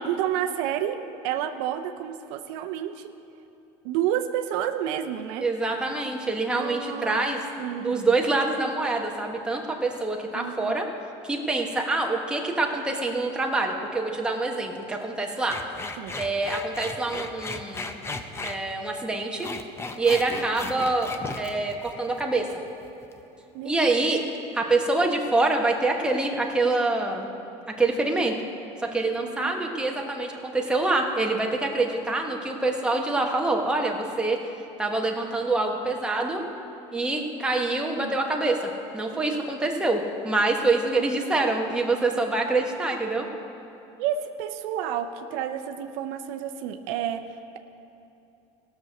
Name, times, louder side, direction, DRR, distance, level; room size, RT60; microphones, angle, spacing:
voice 1, 0.1-1.0 1.2-3.1 3.8-5.5 6.5-7.3 7.6-8.1 10.3-10.7 16.0-16.2 23.5-23.8 29.2-29.5 38.0-38.2 39.1-39.4 44.0-47.2, right 10 dB, 75° right, 7 dB, 0.6 m, -30 dB
voice 2, 5.4-7.4 7.8-10.9 11.2-15.6 16.2-18.0 18.4-19.5 20.0-21.1 21.4-22.5 23.6-24.2 24.5-27.3 27.8-28.3 28.8-34.4 34.8-36.4 36.9-43.3, right 2 dB, 5° right, 0 dB, 1.1 m, -25 dB
sound 1, 15.5-18.6 19.2-22.5 22.8-23.2, left 3 dB, 15° left, 0.6 m, -36 dB
16.5 x 6.2 x 6.6 m, 2.8 s
supercardioid pair, 125°, 15 cm